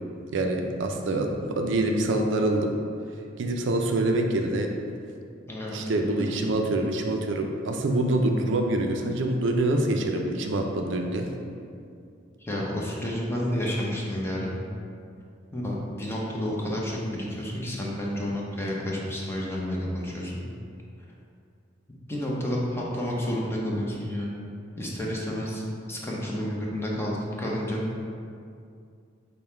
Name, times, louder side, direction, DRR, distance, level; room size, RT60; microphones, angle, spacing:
voice 1, 0.3-2.7 3.4-4.7 5.7-11.3, right 2 dB, 70° right, 3 dB, 0.4 m, -25 dB
voice 2, 12.4-14.5 15.5-20.4 22.1-24.3 24.8-25.6 25.9-27.8, equal, 15° left, -4 dB, 0.6 m, -30 dB
5.4 x 2.2 x 4.3 m, 2.4 s
head